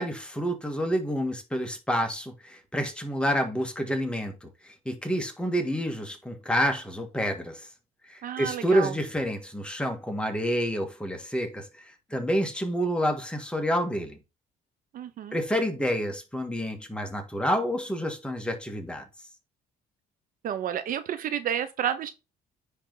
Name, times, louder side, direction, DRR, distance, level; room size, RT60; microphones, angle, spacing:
voice 1, 0.0-7.7 8.1-14.2 15.3-19.1, equal, 5° left, 1.7 m, -28 dB
voice 2, 8.2-8.9 14.9-15.4 20.4-22.1, right 9 dB, 55° right, 0.8 m, -30 dB
10.0 x 3.5 x 4.0 m
cardioid pair, 110°, 17 cm